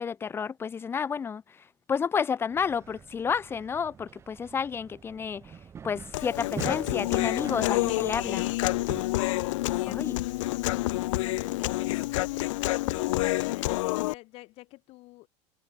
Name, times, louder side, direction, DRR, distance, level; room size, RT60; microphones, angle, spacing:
voice 1, 0.0-1.6 1.9-5.6 5.8-8.5 9.9-10.1, left 6 dB, 15° left, 1.9 m, -31 dB
sound 1, 2.5-9.0, right 7 dB, 15° right, 5.8 m, -44 dB
Human voice, 6.1-14.1, left 18 dB, 80° left, 0.9 m, -28 dB
voice 2, 9.8-10.3 11.0-12.5 12.8-15.3, left 20 dB, 40° left, 4.0 m, -47 dB
supercardioid pair, 175°, 16 cm